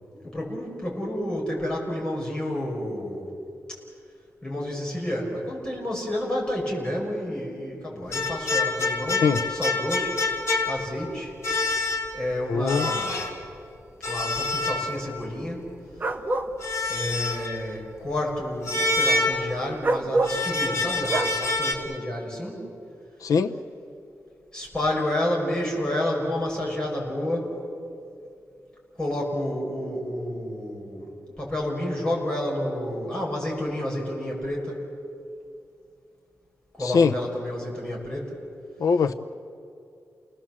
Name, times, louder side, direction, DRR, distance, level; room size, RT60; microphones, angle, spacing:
voice 1, 0.1-3.3 4.4-9.2 9.5-10.2 10.7-11.3 12.1-13.2 14.0-15.6 16.9-22.6 24.5-27.5 29.0-31.1 31.4-34.8 36.8-38.4, left 1 dB, 15° left, -3 dB, 6.1 m, -30 dB
sound 1, 8.1-11.1 11.4-12.3 12.7-13.4 14.0-15.3 16.6-17.6 18.7-19.8 20.2-21.7, left 3 dB, 55° left, 3.2 m, -27 dB
voice 2, 12.5-12.9 23.2-23.5 36.8-37.1 38.8-39.1, left 5 dB, 85° left, 7 dB, 0.9 m, -21 dB
sound 2, 16.0-16.5 19.8-20.4 21.1-21.3, right 2 dB, 30° right, 1.1 m, -25 dB
30.0 x 19.5 x 7.6 m, 2.5 s
wide cardioid pair, 140°, 6 cm